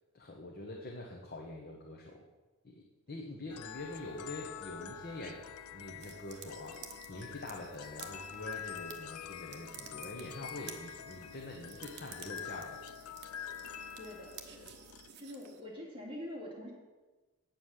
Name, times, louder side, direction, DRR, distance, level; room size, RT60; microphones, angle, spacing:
voice 1, 0.1-2.3 2.6-5.4 5.7-12.8, left 1 dB, 40° left, 0 dB, 1.0 m, -45 dB
sound 1, 3.5-15.1, left 9 dB, 80° left, 0.5 m, -46 dB
sound 2, 6.0-15.6, right 7 dB, 50° right, 1.0 m, -52 dB
voice 2, 14.0-14.8 15.2-16.7, left 1 dB, 25° right, -4 dB, 2.5 m, -45 dB
8.8 x 7.6 x 6.5 m, 1.2 s
head